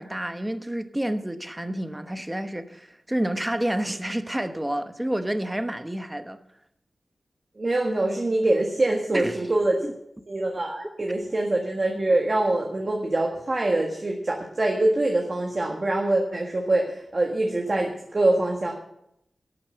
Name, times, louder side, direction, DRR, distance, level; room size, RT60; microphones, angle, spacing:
voice 1, 0.0-6.4 9.1-9.5 9.8-9.9, right 1 dB, 10° right, 10 dB, 0.9 m, -29 dB
voice 2, 7.6-9.8 10.3-18.7, right 2 dB, 35° right, 1 dB, 1.7 m, -24 dB
12.0 x 8.7 x 7.7 m, 0.78 s
wide cardioid pair, 130°, 0 cm